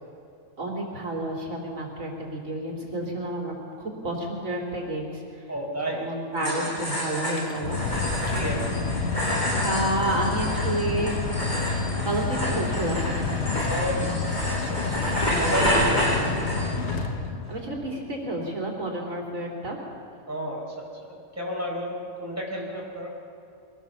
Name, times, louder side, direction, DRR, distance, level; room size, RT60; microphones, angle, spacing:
voice 1, 0.6-5.1 6.0-7.8 9.5-13.0 17.5-19.8, right 1 dB, 75° right, -1 dB, 3.4 m, -30 dB
voice 2, 5.5-6.1 6.4-6.7 8.3-8.7 13.7-15.0 15.3-16.4 20.3-23.1, equal, 10° right, -3 dB, 4.8 m, -31 dB
sound 1, 6.4-16.9, equal, 35° left, 6.3 m, -29 dB
Mechanical fan, 7.3-17.8, left 4 dB, 55° left, 1.3 m, -29 dB
23.5 x 18.5 x 7.1 m, 2.6 s
omnidirectional pair, 1.4 m